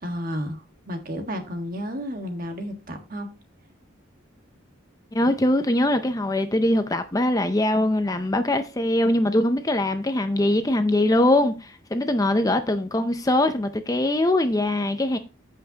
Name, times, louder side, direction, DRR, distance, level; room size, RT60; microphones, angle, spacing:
voice 1, 0.0-3.3, equal, 45° right, 1.5 m, -32 dB
voice 2, 5.1-15.2, left 1 dB, 15° left, 0.5 m, -22 dB
14.0 x 5.4 x 2.8 m
head